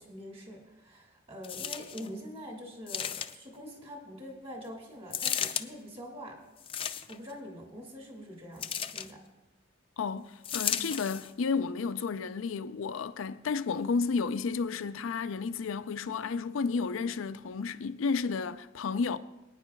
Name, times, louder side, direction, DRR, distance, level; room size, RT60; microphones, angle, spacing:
voice 1, 0.0-6.4 7.1-9.2, equal, 30° right, 2.1 m, -44 dB
sound 1, 1.4-2.1 2.9-3.6 5.1-5.7 6.6-7.3 8.6-9.1 10.4-11.3 12.0-12.1, left 8 dB, 30° left, 0.4 m, -34 dB
voice 2, 10.0-19.2, left 5 dB, 80° left, 0.5 m, -32 dB
22.5 x 9.6 x 2.3 m
head